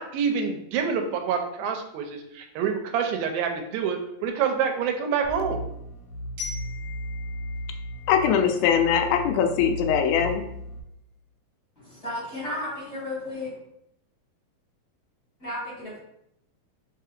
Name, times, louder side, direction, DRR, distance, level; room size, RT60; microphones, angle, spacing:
voice 1, 0.0-5.6, right 6 dB, 85° right, 4 dB, 2.3 m, -27 dB
sound 1, 5.2-10.8, equal, 75° left, 1.9 m, -35 dB
Glockenspiel, 6.4-9.2, left 4 dB, 55° right, 2.2 m, -42 dB
voice 2, 8.1-10.5, left 8 dB, 90° left, 5 dB, 2.4 m, -22 dB
voice 3, 11.8-13.6 15.4-16.0, left 1 dB, 50° left, -9 dB, 1.1 m, -33 dB
5.4 x 2.8 x 2.4 m, 0.78 s
omnidirectional pair, 4.2 m